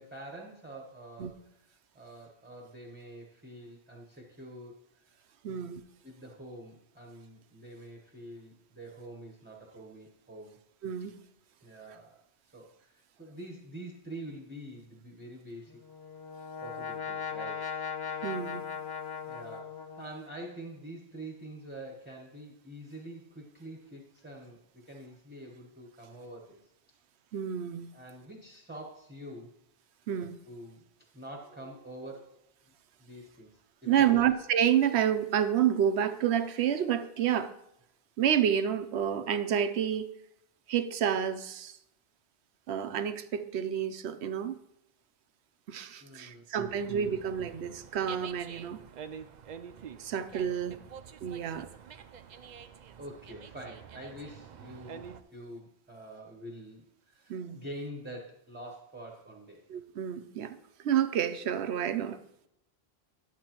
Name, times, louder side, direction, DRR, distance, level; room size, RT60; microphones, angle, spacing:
voice 1, 0.0-1.4 1.9-5.7 6.0-10.6 11.6-12.2 12.5-15.8 16.6-17.8 19.2-26.7 27.9-29.6 30.4-30.9 31.1-32.7 33.0-34.3 46.0-47.2 50.4-50.9 52.3-52.5 53.0-59.6, right 1 dB, 10° right, -1 dB, 0.9 m, -46 dB
voice 2, 5.4-5.8 10.8-11.2 18.2-18.7 27.3-27.9 30.1-30.4 33.9-37.5 38.2-40.1 40.7-41.8 42.7-44.6 45.7-48.8 50.0-50.8 51.2-51.7 57.3-57.6 59.7-62.2, right 9 dB, 90° right, 11 dB, 0.9 m, -29 dB
Brass instrument, 15.7-20.5, left 7 dB, 25° left, 0.6 m, -38 dB
Dog, 46.7-55.2, right 7 dB, 55° right, 0.5 m, -48 dB
11.5 x 7.5 x 3.0 m, 0.79 s
omnidirectional pair, 1.1 m